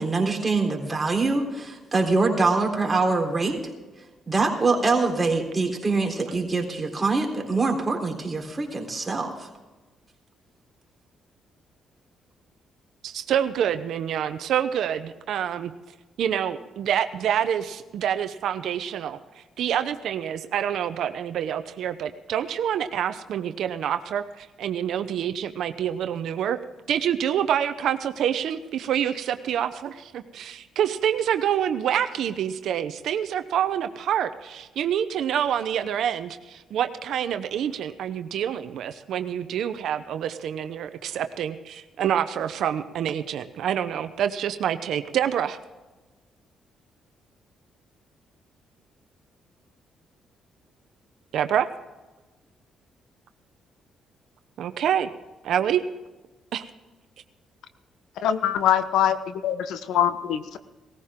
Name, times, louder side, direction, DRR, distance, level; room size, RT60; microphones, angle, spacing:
voice 1, 0.0-3.6 4.3-9.5, right 3 dB, 20° right, 0 dB, 3.8 m, -24 dB
voice 2, 13.0-15.7 16.2-19.2 19.6-26.6 26.9-45.6 51.3-51.7 54.6-55.1 55.4-55.8 56.5-56.7, right 9 dB, 75° right, 9 dB, 0.8 m, -27 dB
voice 3, 58.2-59.2 59.4-60.6, left 10 dB, 85° left, 11 dB, 1.0 m, -23 dB
19.0 x 15.0 x 3.7 m, 1.2 s
cardioid pair, 90°, 0 cm